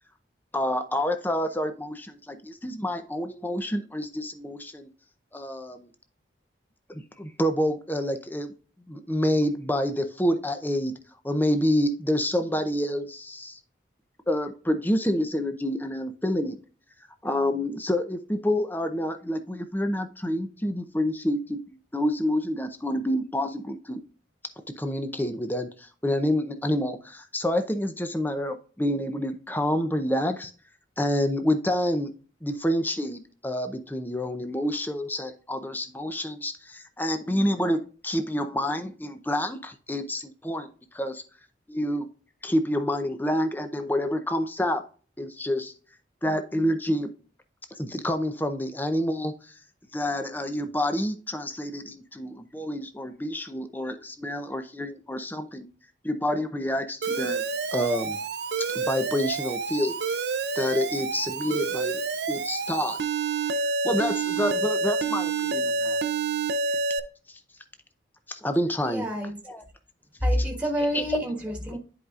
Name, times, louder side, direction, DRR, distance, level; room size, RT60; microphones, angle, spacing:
voice 1, 0.5-4.9 5.3-5.9 6.9-8.5 8.9-10.9 11.2-13.6 14.3-16.6 17.2-24.0 24.8-30.5 31.0-32.1 32.4-40.7 40.9-41.2 41.7-42.1 42.4-44.8 45.2-45.7 46.2-47.1 47.7-49.5 49.9-55.7 56.0-57.4 57.7-58.2 58.7-60.3 60.5-62.0 62.3-63.0 63.8-66.0 67.3-67.4 68.3-69.0 69.5-69.6 70.9-71.0 71.7-71.8, left 1 dB, 10° left, 8 dB, 0.6 m, -28 dB
Alarm, 57.0-67.0, right 4 dB, 60° right, 0.6 m, -28 dB
voice 2, 68.8-69.4 70.2-71.8, equal, 5° right, -1 dB, 1.5 m, -27 dB
10.5 x 4.8 x 2.4 m, 0.38 s
head